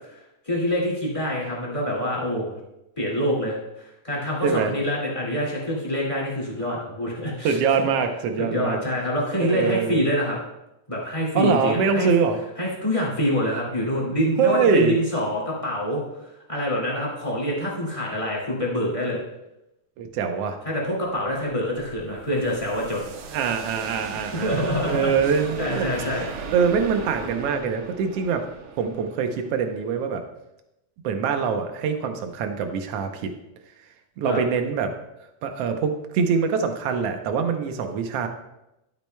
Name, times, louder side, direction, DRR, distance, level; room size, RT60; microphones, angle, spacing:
voice 1, 0.5-2.5 3.0-7.9 8.4-10.4 10.9-12.1 12.6-16.0 16.5-19.2 20.6-23.1 24.3-26.3 34.2-34.4, equal, 15° left, -4 dB, 1.8 m, -26 dB
voice 2, 4.4-4.7 7.4-8.8 9.4-10.1 11.3-12.4 14.4-14.9 20.0-20.6 23.3-25.9 26.5-28.5 28.8-30.2 31.0-33.3 34.2-34.9 35.4-38.3, right 6 dB, 70° right, 6 dB, 1.6 m, -24 dB
sound 1, 21.2-30.0, right 5 dB, 85° right, 2.3 m, -38 dB
12.0 x 8.4 x 2.2 m, 0.89 s
omnidirectional pair, 3.4 m